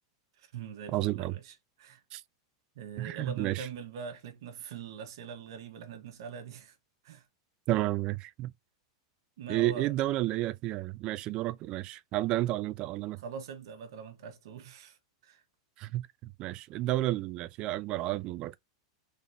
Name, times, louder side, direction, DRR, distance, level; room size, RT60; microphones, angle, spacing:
voice 1, 0.4-2.0 2.7-6.8 7.0-7.3 9.4-9.9 13.1-15.4, right 6 dB, 70° right, 1.2 m, -43 dB
voice 2, 0.9-1.3 2.1-2.2 3.0-3.6 7.7-8.5 9.5-13.2 15.8-16.0 16.4-18.6, right 16 dB, 35° right, 0.4 m, -31 dB
4.0 x 3.6 x 2.7 m
supercardioid pair, 155°, 3 cm